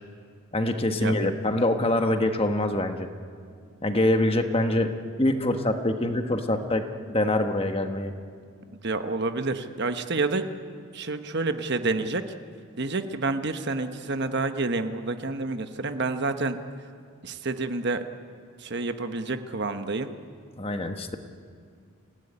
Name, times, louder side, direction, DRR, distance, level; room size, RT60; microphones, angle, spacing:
voice 1, 0.5-3.1 3.8-4.9 5.2-8.1 20.6-21.2, left 1 dB, 25° left, 6 dB, 1.3 m, -25 dB
voice 2, 8.8-10.5 10.9-12.2 12.8-16.6 17.2-18.0 18.6-20.1, right 3 dB, 50° right, 8 dB, 1.2 m, -28 dB
27.0 x 17.0 x 9.9 m, 2.2 s
head